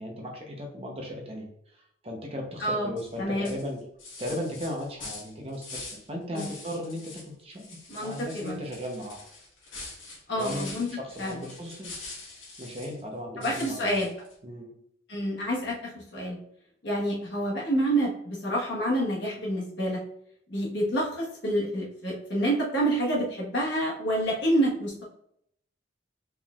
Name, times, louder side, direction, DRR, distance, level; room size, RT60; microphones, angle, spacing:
voice 1, 0.0-3.8 4.2-9.2 10.4-12.0 12.6-13.9 14.4-14.8, equal, 30° right, 1 dB, 0.7 m, -36 dB
voice 2, 2.6-2.9 3.2-3.5 6.3-6.5 7.9-8.6 10.3-10.9 11.2-11.4 13.4-14.1 15.1-16.4 16.8-20.0 20.5-25.0, right 1 dB, 60° left, -4 dB, 1.3 m, -28 dB
sound 1, 3.0-3.1 3.4-6.1 6.3-7.3 7.6-13.0 13.4-14.3, left 3 dB, 85° left, 1.6 m, -44 dB
4.5 x 3.7 x 2.4 m, 0.72 s
head